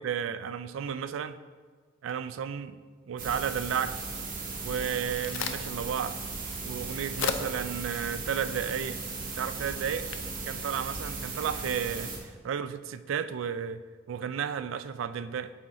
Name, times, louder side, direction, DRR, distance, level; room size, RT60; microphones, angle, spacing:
voice 1, 0.0-1.4 2.0-2.8 3.1-4.0 4.6-6.2 6.6-9.0 9.3-10.1 10.4-15.5, right 7 dB, 80° right, 13 dB, 0.3 m, -33 dB
sound 1, 3.2-12.2, right 4 dB, 45° right, 1.1 m, -37 dB
Crack, 4.7-11.6, left 6 dB, 75° left, 0.4 m, -40 dB
8.7 x 4.1 x 3.7 m, 1.5 s
head